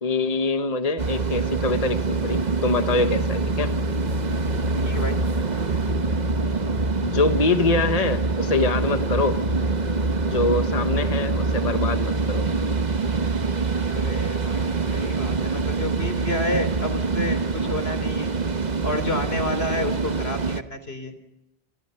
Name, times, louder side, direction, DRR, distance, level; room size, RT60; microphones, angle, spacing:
voice 1, 0.0-3.7 7.0-9.4 10.3-12.4, left 3 dB, 40° left, 8 dB, 1.4 m, -24 dB
sound 1, 1.0-20.6, right 3 dB, 45° right, 1.3 m, -25 dB
voice 2, 4.8-5.2 13.8-18.3 18.8-21.1, left 1 dB, 80° left, 11 dB, 4.0 m, -30 dB
29.0 x 28.0 x 5.7 m, 0.89 s
omnidirectional pair, 1.0 m